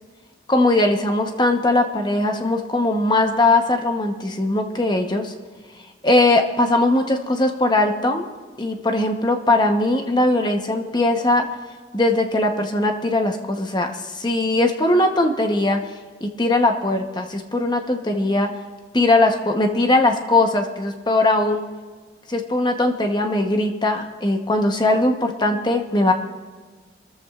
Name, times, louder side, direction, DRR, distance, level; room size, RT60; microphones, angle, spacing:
voice 1, 0.5-5.3 6.0-8.3 8.6-11.5 11.9-15.8 16.2-18.5 18.9-21.6 22.3-26.1, left 2 dB, 20° left, 4 dB, 0.9 m, -20 dB
28.0 x 14.0 x 2.4 m, 1.5 s
head